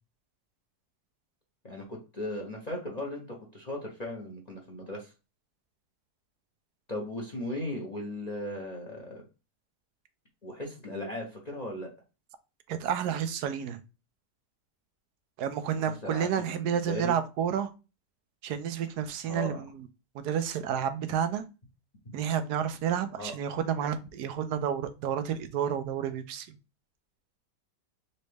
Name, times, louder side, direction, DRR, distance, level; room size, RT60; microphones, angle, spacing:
voice 1, 1.6-5.1 6.9-9.2 10.4-11.9 15.7-17.2 19.3-19.6 23.1-23.3, left 1 dB, 30° left, 0.8 m, -37 dB
voice 2, 12.7-13.8 15.4-17.7 18.4-19.7 20.1-21.4 22.1-26.5, right 8 dB, 80° right, 1.2 m, -30 dB
4.1 x 3.3 x 3.3 m
omnidirectional pair, 1.7 m